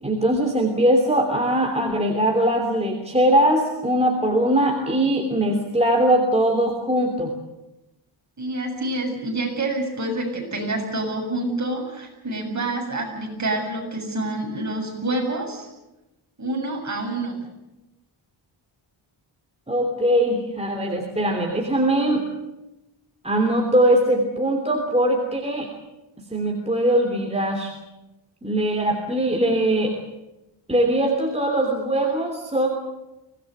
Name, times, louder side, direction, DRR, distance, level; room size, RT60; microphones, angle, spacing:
voice 1, 0.0-7.3 19.7-22.3 23.2-25.7 26.3-27.7 28.4-29.9 30.7-32.7, right 1 dB, 15° right, 1 dB, 3.2 m, -21 dB
voice 2, 8.4-15.7 16.4-17.4, right 2 dB, 35° right, 1 dB, 7.5 m, -27 dB
24.5 x 19.0 x 8.0 m, 0.97 s
wide cardioid pair, 135°, 48 cm